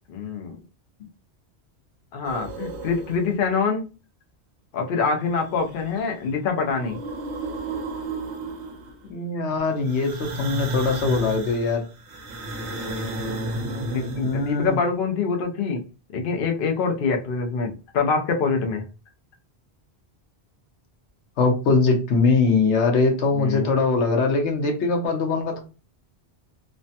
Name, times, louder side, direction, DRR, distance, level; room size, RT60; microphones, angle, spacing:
voice 1, 0.1-0.6 2.1-3.9 4.7-7.0 13.9-15.8 16.1-18.8 23.3-23.7, left 5 dB, 60° left, 3 dB, 0.7 m, -25 dB
sound 1, 2.2-3.5 5.2-6.2 6.5-9.1 9.8-14.7, right 1 dB, 85° right, 1.0 m, -33 dB
voice 2, 9.0-11.9 13.7-14.8 21.4-25.6, left 3 dB, 85° left, 3 dB, 1.1 m, -22 dB
3.2 x 2.1 x 2.7 m, 0.32 s
omnidirectional pair, 1.1 m